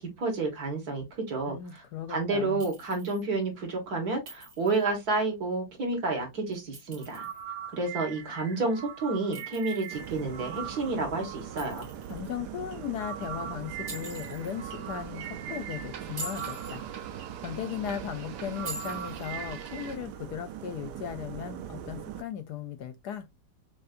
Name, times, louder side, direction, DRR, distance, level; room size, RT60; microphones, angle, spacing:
voice 1, 0.2-1.6 2.1-7.3 7.7-11.9, right 3 dB, 55° right, 1.9 m, -30 dB
voice 2, 1.5-2.6 12.1-17.0 17.4-23.3, left 9 dB, 70° left, 1.0 m, -37 dB
Chink clink, 2.6-3.2 4.3-4.9 6.5-7.4 9.3-10.2 11.6-12.3 13.9-14.6 16.0-16.8 18.7-19.3, right 2 dB, 40° right, 2.1 m, -44 dB
sound 1, 7.0-20.0, right 8 dB, 90° right, 1.6 m, -42 dB
sound 2, 9.9-22.2, right 9 dB, 70° right, 1.1 m, -41 dB
6.1 x 2.6 x 2.5 m
omnidirectional pair, 2.0 m